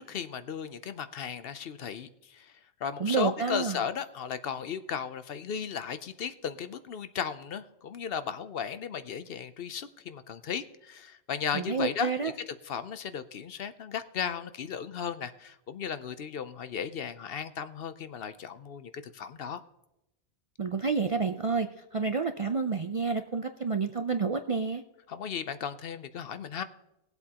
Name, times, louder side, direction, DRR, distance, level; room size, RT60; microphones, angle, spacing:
voice 1, 0.0-2.5 2.8-19.6 25.1-26.6, left 7 dB, 65° left, 12 dB, 0.8 m, -36 dB
voice 2, 3.0-3.8 11.5-12.3 20.6-24.8, right 4 dB, 45° right, 7 dB, 0.4 m, -29 dB
20.0 x 8.0 x 2.9 m, 0.90 s
omnidirectional pair, 1.1 m